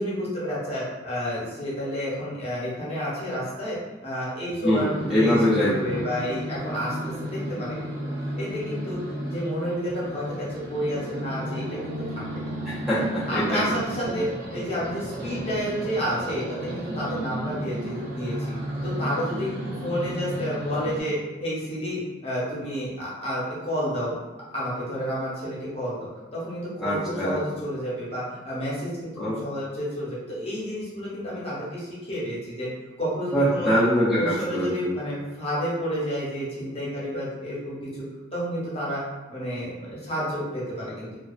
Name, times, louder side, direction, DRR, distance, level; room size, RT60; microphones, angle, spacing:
voice 1, 0.0-3.8 4.0-7.9 8.4-9.0 9.3-12.0 12.3-12.4 13.3-18.5 18.8-19.5 19.8-24.2 24.5-29.1 29.4-32.7 33.0-33.7 34.1-37.8 38.3-39.0 39.3-41.1, equal, 30° left, -7 dB, 0.7 m, -30 dB
voice 2, 4.6-6.0 12.6-13.6 14.1-14.2 26.8-27.4 29.2-29.4 33.3-35.0, equal, ahead, -11 dB, 0.4 m, -24 dB
sound 1, 4.7-21.0, right 1 dB, 55° right, 0.6 m, -33 dB
2.4 x 2.2 x 2.3 m, 1.2 s
head